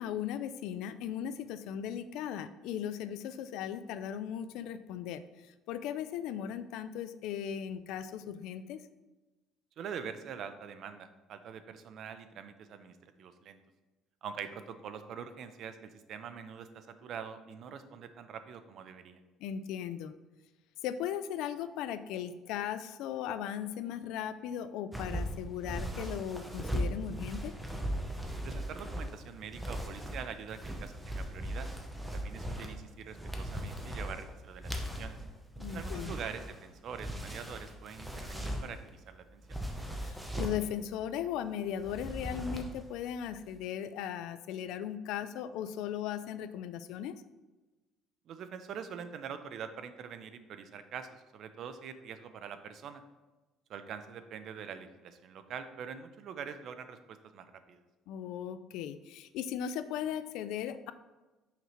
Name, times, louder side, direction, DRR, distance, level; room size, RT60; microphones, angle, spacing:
voice 1, 0.0-5.2 5.7-8.8 19.4-20.1 20.8-27.6 35.6-36.1 40.0-47.2 58.1-60.9, left 9 dB, 75° left, 12 dB, 0.3 m, -37 dB
voice 2, 9.8-13.6 14.2-19.2 28.4-31.7 32.1-35.2 35.7-39.6 48.3-53.0 53.7-57.8, right 7 dB, 50° right, 10 dB, 0.5 m, -44 dB
sound 1, 24.9-38.9 39.4-40.7 41.8-42.9 43.2-43.5, equal, 5° right, 0.7 m, -38 dB
5.7 x 5.6 x 3.0 m, 1.2 s
cardioid pair, 140°, 0 cm